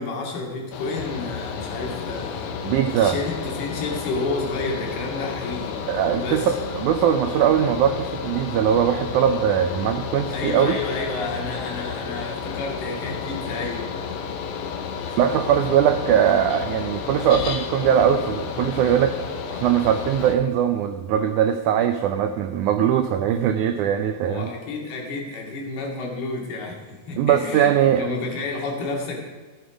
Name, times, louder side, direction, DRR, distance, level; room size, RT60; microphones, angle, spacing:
voice 1, 0.0-6.6 10.3-14.3 15.0-15.3 24.2-29.2, left 3 dB, 90° left, -1 dB, 4.4 m, -31 dB
Mechanical fan, 0.7-20.3, left 6 dB, 65° left, 2.2 m, -32 dB
voice 2, 2.6-3.2 5.9-10.8 15.2-19.2 19.5-24.5 27.2-28.1, right 9 dB, 90° right, 8 dB, 1.7 m, -21 dB
15.0 x 9.3 x 5.1 m, 1.5 s
omnidirectional pair, 4.3 m